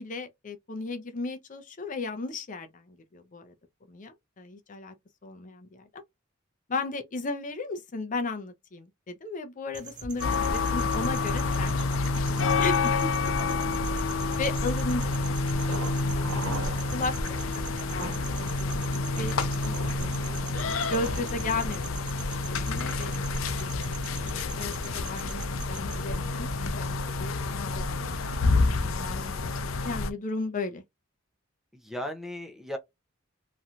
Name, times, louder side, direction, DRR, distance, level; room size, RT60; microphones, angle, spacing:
voice 1, 0.0-3.5 3.9-4.9 5.2-6.0 6.7-11.7 12.2-12.9 13.2-13.3 13.9-14.1 14.4-15.4 15.7-15.9 16.1-16.6 16.9-17.6 17.9-19.4 19.6-20.4 20.6-23.3 23.6-24.0 24.4-27.3 27.8-28.2 29.1-29.4 29.8-30.8, left 3 dB, 40° left, 0.5 m, -35 dB
sound 1, 9.7-26.1, right 7 dB, 40° right, 0.9 m, -46 dB
sound 2, 10.2-30.1, left 3 dB, 85° left, 0.5 m, -28 dB
voice 2, 13.4-13.8 28.8-29.2 31.7-32.8, equal, ahead, 0.6 m, -38 dB
Thunder, 15.6-23.4 23.7-23.8 24.2-24.3, right 2 dB, 80° right, 1.6 m, -41 dB
3.1 x 2.7 x 2.4 m
head